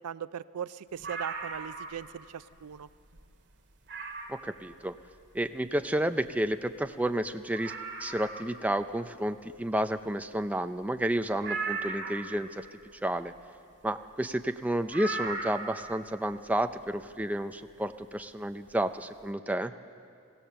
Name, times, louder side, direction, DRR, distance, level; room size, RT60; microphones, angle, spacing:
voice 1, 0.0-2.9, right 8 dB, 90° right, 16 dB, 0.5 m, -39 dB
sound 1, 1.0-2.1 2.5-2.6 3.1-3.2 3.9-4.5 6.3-6.4 6.5-6.6 7.1-7.2 7.5-8.6 11.4-12.4 14.9-15.9 17.2-17.3, right 3 dB, 50° right, 2.2 m, -37 dB
voice 2, 4.3-5.0 5.3-7.7 8.0-12.7 13.0-13.3 13.8-19.7, right 1 dB, 5° right, 8 dB, 0.4 m, -31 dB
24.5 x 16.0 x 6.8 m, 2.3 s
head